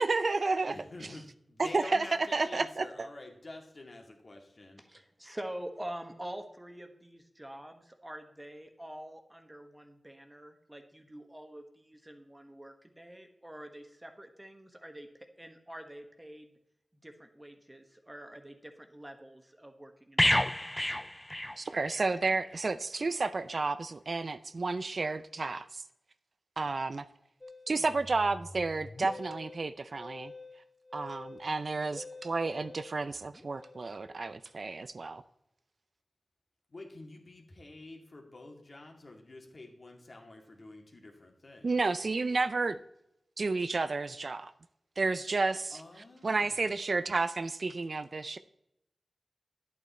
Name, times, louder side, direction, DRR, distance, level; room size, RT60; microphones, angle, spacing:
voice 1, 0.0-0.7 1.6-2.1 2.3-3.1 21.6-25.8 26.6-27.1 27.7-30.3 30.9-35.2 41.6-42.8 43.4-44.5 45.0-45.8 46.2-48.4, right 3 dB, 55° right, 12 dB, 0.4 m, -31 dB
voice 2, 0.6-1.2 1.6-4.8 36.7-41.7 45.7-46.6, left 2 dB, 50° left, 2 dB, 2.1 m, -48 dB
voice 3, 4.8-15.1 15.4-16.5 17.0-20.6, right 1 dB, 15° right, 5 dB, 1.3 m, -46 dB
sound 1, 20.2-22.1 22.4-22.6, left 1 dB, 10° left, 0.3 m, -29 dB
Musical instrument, 27.4-34.2, left 2 dB, 30° left, 0.9 m, -48 dB
11.0 x 8.4 x 4.3 m, 0.80 s
wide cardioid pair, 65°, 0 cm